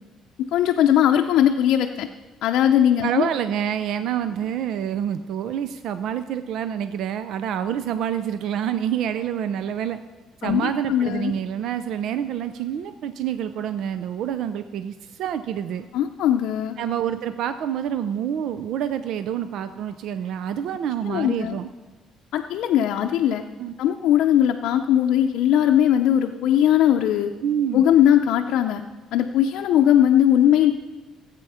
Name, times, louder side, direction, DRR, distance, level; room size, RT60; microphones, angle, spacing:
voice 1, 0.4-2.1 2.4-3.3 10.4-11.3 15.9-16.7 21.0-21.6 22.3-23.4 23.8-27.3 27.7-28.8 29.1-30.7, left 10 dB, 65° left, 3 dB, 0.6 m, -19 dB
voice 2, 3.0-10.0 10.4-15.9 16.8-21.7 23.6-23.7 27.4-27.8, right 9 dB, 60° right, 11 dB, 0.4 m, -27 dB
16.0 x 8.3 x 5.6 m, 1.3 s
cardioid pair, 180°, 0 cm